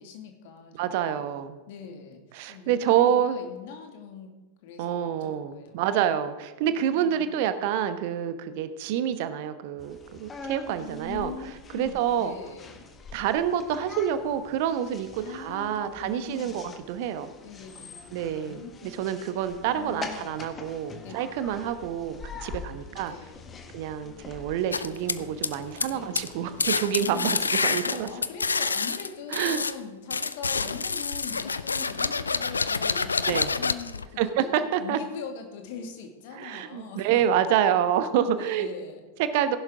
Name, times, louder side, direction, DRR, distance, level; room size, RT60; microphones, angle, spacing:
voice 1, 0.0-1.2 1.7-2.2 2.5-4.3 4.6-5.8 6.9-7.3 10.8-12.9 15.2-16.6 17.4-19.2 19.7-20.4 21.0-21.4 22.9-23.8 25.9-26.4 27.0-27.5 27.8-37.2 38.3-39.0, left 6 dB, 50° left, 4 dB, 2.2 m, -42 dB
voice 2, 0.8-1.6 2.3-3.4 4.8-11.3 11.7-12.3 13.1-17.3 18.1-23.1 23.7-28.1 29.3-29.6 33.3-33.5 34.2-35.0 36.4-38.7 39.2-39.6, right 9 dB, 50° right, 11 dB, 1.0 m, -27 dB
sound 1, 9.8-27.5, left 4 dB, 20° left, 1.6 m, -44 dB
sound 2, 24.7-25.9 26.2-26.3 26.6-29.7 30.1-34.0, left 4 dB, 75° left, 0.5 m, -27 dB
16.5 x 11.5 x 3.8 m, 1.2 s
figure-of-eight pair, 90°, 0 cm